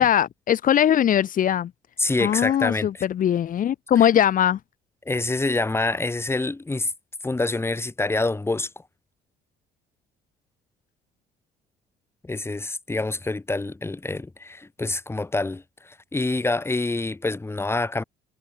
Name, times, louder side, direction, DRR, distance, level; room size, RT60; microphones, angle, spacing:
voice 1, 0.0-1.7 2.2-4.6, left 10 dB, 55° left, 3.5 m, -20 dB
voice 2, 2.0-2.9 5.0-6.9 7.2-8.7 12.2-18.0, left 2 dB, 15° left, 6.8 m, -26 dB
cardioid pair, 110°, 17 cm